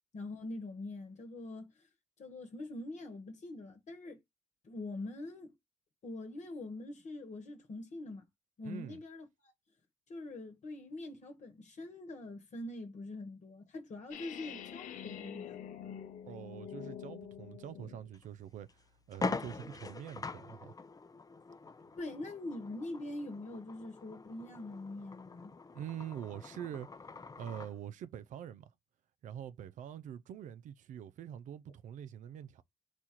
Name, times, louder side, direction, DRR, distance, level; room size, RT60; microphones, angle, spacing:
voice 1, 0.1-1.9 2.2-4.2 4.6-5.5 6.0-8.3 8.6-9.5 10.1-15.6 21.9-25.5, left 2 dB, 60° left, 1.1 m, -44 dB
voice 2, 8.6-9.0 16.3-20.7 25.7-28.7 29.2-32.6, right 9 dB, 70° right, 0.4 m, -45 dB
sound 1, 14.1-18.1, left 9 dB, 75° left, 0.5 m, -46 dB
sound 2, 18.1-18.3 18.7-18.8 19.1-27.8, left 3 dB, 25° left, 0.5 m, -43 dB
4.2 x 2.4 x 4.3 m
supercardioid pair, 45°, 13 cm